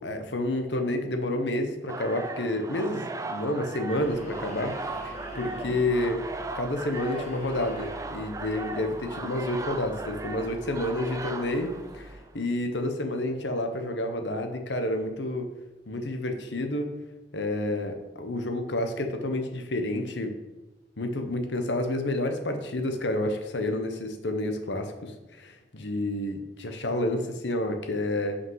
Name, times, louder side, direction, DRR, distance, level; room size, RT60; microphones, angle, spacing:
voice 1, 0.0-4.7 5.0-6.2 6.5-15.5 15.9-16.9 17.3-20.3 21.0-25.1 25.4-28.4, left 1 dB, 85° left, 6 dB, 1.0 m, -29 dB
sound 1, 1.9-12.3, right 3 dB, 20° right, 0.4 m, -38 dB
sound 2, 3.9-12.1, right 1 dB, 40° left, 1.7 m, -45 dB
5.7 x 5.5 x 5.6 m, 1.1 s
head